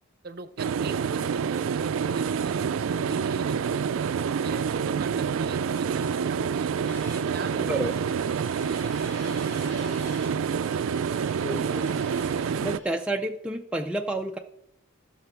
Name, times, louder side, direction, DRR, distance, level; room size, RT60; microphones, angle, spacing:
voice 1, 0.2-3.8 4.3-7.7 8.0-10.3, right 3 dB, 50° right, 11 dB, 0.7 m, -42 dB
sound 1, 0.6-12.8, right 6 dB, 80° right, 0.3 m, -27 dB
sound 2, 6.8-13.1, left 2 dB, 65° left, 2.4 m, -49 dB
voice 2, 11.4-12.0 12.6-14.4, right 1 dB, 5° right, 2 dB, 0.3 m, -30 dB
15.5 x 5.9 x 4.4 m, 0.81 s
head